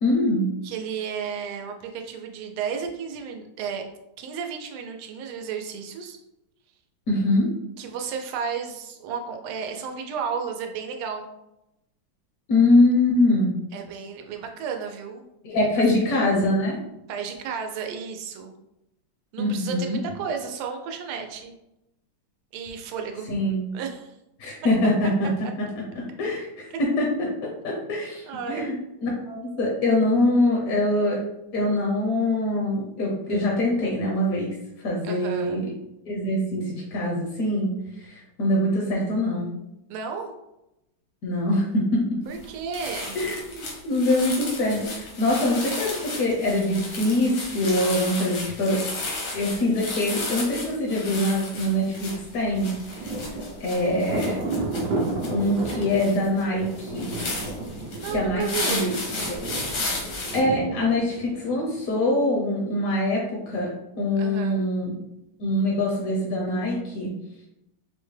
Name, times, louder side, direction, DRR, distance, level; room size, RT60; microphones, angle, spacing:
voice 1, 0.0-0.5 7.1-7.5 12.5-13.5 15.4-16.8 19.4-20.0 23.3-23.7 24.4-25.3 26.2-27.1 27.6-31.2 31.5-34.5 34.8-35.6 36.1-37.7 38.1-39.5 41.2-42.0 43.1-48.8 49.3-52.7 53.6-54.4 55.3-57.2 58.1-58.9 59.3-59.4 60.3-65.0 65.4-67.1, left 1 dB, 65° left, -2 dB, 0.9 m, -23 dB
voice 2, 0.6-3.9 4.2-6.2 7.8-11.3 13.7-15.3 17.1-18.5 19.3-21.6 22.5-23.3 23.7-24.1 25.4-25.5 26.7-26.8 27.2-27.4 28.2-28.7 35.0-35.6 39.9-40.3 42.3-43.2 58.0-58.9 64.2-64.7, right 6 dB, 85° right, 4 dB, 1.4 m, -33 dB
sound 1, 42.3-42.5 42.7-60.4, left 2 dB, 80° left, 1.8 m, -34 dB
Thunder, 52.5-62.0, right 2 dB, 70° right, 0.8 m, -33 dB
5.2 x 2.1 x 3.2 m, 0.89 s
omnidirectional pair, 2.3 m